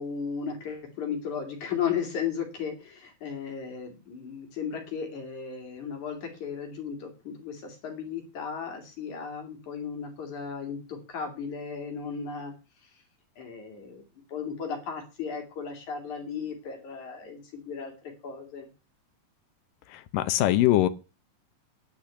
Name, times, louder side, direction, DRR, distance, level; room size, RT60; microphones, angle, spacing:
voice 1, 0.0-12.5 12.8-13.0 13.4-18.7, left 6 dB, 55° left, 3 dB, 3.7 m, -35 dB
voice 2, 19.9-20.9, left 14 dB, 75° left, 13 dB, 2.3 m, -22 dB
10.0 x 6.1 x 8.4 m, 0.31 s
omnidirectional pair, 4.1 m